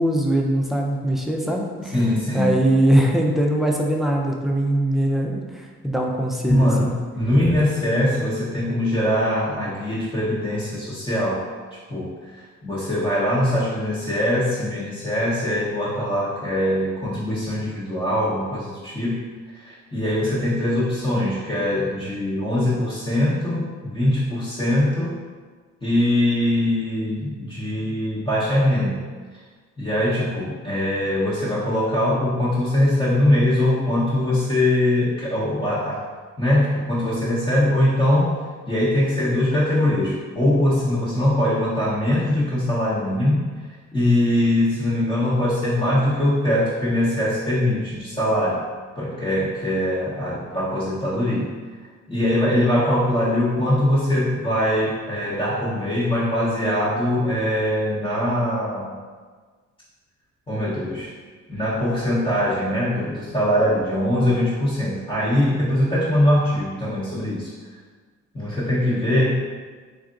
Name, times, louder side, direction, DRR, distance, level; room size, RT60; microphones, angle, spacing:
voice 1, 0.0-1.9 2.3-5.4 5.8-7.0, right 1 dB, ahead, -1 dB, 0.5 m, -21 dB
voice 2, 1.9-2.5 6.5-11.4 11.9-19.2 19.5-25.1 25.8-29.0 29.8-36.0 36.4-38.3 38.7-43.5 43.9-48.6 49.0-51.5 52.1-59.0 60.5-61.1 61.5-67.5 68.3-69.4, left 1 dB, 20° left, -11 dB, 0.9 m, -22 dB
3.7 x 3.4 x 2.5 m, 1.5 s
cardioid pair, 90°, 30 cm